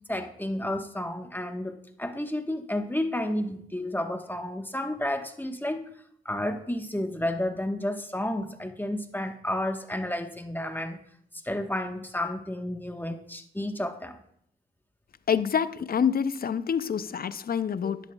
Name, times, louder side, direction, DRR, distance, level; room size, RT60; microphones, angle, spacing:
voice 1, 0.1-5.8 6.2-11.0 11.4-14.2 17.8-17.9, left 1 dB, 10° left, 1.2 m, -31 dB
voice 2, 15.3-18.0, left 7 dB, 55° left, 0.5 m, -27 dB
11.0 x 11.0 x 2.3 m
cardioid pair, 50°, 19 cm